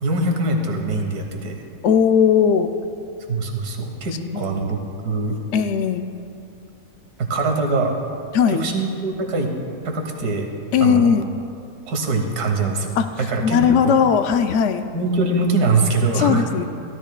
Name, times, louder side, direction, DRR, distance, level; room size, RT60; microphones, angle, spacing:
voice 1, 0.0-1.6 3.3-5.4 7.2-8.0 8.5-9.5 9.8-10.5 10.8-11.1 11.9-14.0 14.9-16.4, right 3 dB, 90° right, 3 dB, 1.7 m, -23 dB
voice 2, 1.8-2.7 4.3-4.5 5.5-6.1 8.3-8.6 10.7-11.3 13.0-13.1 13.4-14.9 16.1-16.6, left 7 dB, 65° left, 8 dB, 0.7 m, -18 dB
16.0 x 12.5 x 2.2 m, 2.6 s
omnidirectional pair, 1.6 m